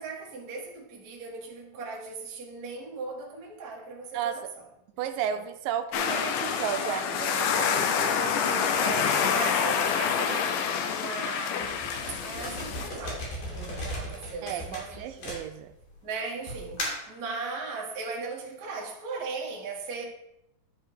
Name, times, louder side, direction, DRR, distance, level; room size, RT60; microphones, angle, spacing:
voice 1, 0.0-4.6 5.3-5.4 8.8-11.8 12.1-15.3 16.0-20.0, right 4 dB, 40° right, -1 dB, 1.3 m, -38 dB
voice 2, 5.0-9.0 14.4-15.7, right 9 dB, 85° right, 8 dB, 2.2 m, -34 dB
sound 1, 5.9-12.9, left 7 dB, 75° left, 2.2 m, -27 dB
sound 2, 11.6-15.9 16.5-17.1, equal, 55° left, 3.7 m, -36 dB
11.0 x 4.4 x 5.0 m, 0.84 s
omnidirectional pair, 4.0 m